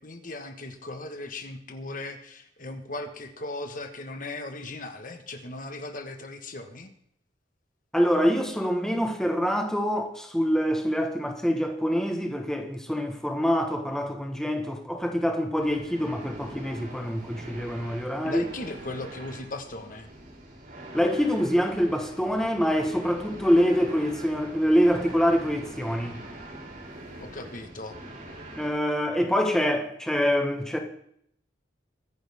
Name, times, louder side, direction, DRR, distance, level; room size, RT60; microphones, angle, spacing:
voice 1, 0.0-6.9 18.2-20.1 27.2-28.0, left 2 dB, 45° left, 1.6 m, -37 dB
voice 2, 7.9-18.5 20.9-26.2 28.5-30.8, equal, 5° left, 1.4 m, -25 dB
sound 1, 15.6-28.7, right 1 dB, 50° right, 5.1 m, -43 dB
23.5 x 10.5 x 3.7 m
head